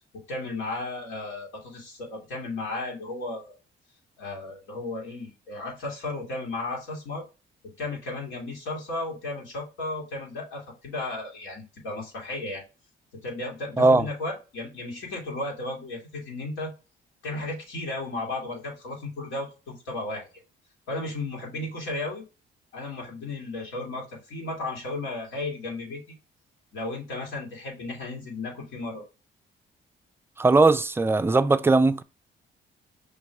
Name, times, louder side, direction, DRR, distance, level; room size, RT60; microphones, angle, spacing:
voice 1, 0.1-3.6 4.2-7.2 7.8-12.6 13.2-16.7 17.2-20.3 20.9-22.2 22.7-26.2 26.7-29.0, left 2 dB, 90° left, 2.3 m, -34 dB
voice 2, 30.4-32.0, right 3 dB, 10° right, 0.3 m, -19 dB
5.1 x 3.0 x 3.4 m
cardioid pair, 90°, 20 cm